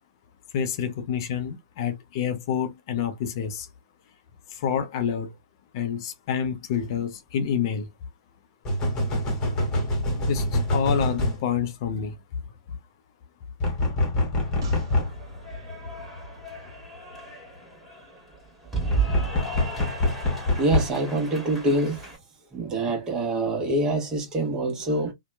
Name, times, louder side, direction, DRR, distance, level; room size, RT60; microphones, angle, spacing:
voice 1, 0.5-3.7 4.5-5.3 5.7-7.9 10.3-12.4 12.7-12.8, left 7 dB, 50° left, 0.5 m, -28 dB
sound 1, 6.7-6.8 8.6-11.4 13.6-15.1 18.9-20.9, left 1 dB, 25° left, 1.1 m, -25 dB
Cheering / Applause, 14.4-22.2, right 4 dB, 5° right, 1.4 m, -35 dB
sound 2, 14.6-18.1 18.3-18.4, left 1 dB, 50° right, 1.1 m, -40 dB
voice 2, 20.6-22.0 22.5-25.1, right 2 dB, 20° right, 1.0 m, -25 dB
2.8 x 2.2 x 2.2 m
hypercardioid pair, 120°, 3 cm